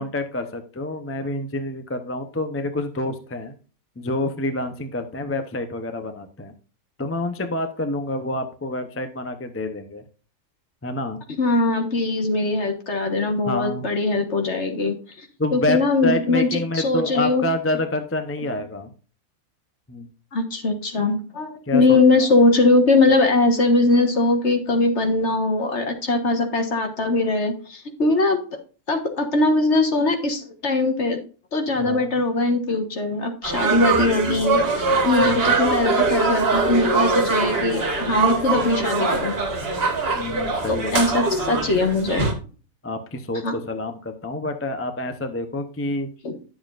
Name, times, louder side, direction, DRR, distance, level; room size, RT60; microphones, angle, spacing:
voice 1, 0.0-3.5 4.0-6.5 7.0-10.0 10.8-11.2 13.5-13.9 15.4-18.9 19.9-20.1 21.7-22.0 31.8-32.1 35.2-35.5 40.1-40.9 42.8-46.1, left 1 dB, 15° left, 7 dB, 0.5 m, -27 dB
voice 2, 11.4-15.3 15.5-17.5 20.3-28.4 28.9-31.2 31.5-39.3 40.7-42.3 43.4-43.5 46.2-46.3, left 2 dB, 55° left, 5 dB, 1.6 m, -21 dB
sound 1, 33.4-42.3, right 3 dB, 45° right, 1.6 m, -22 dB
11.0 x 7.1 x 2.5 m, 0.36 s
omnidirectional pair, 1.5 m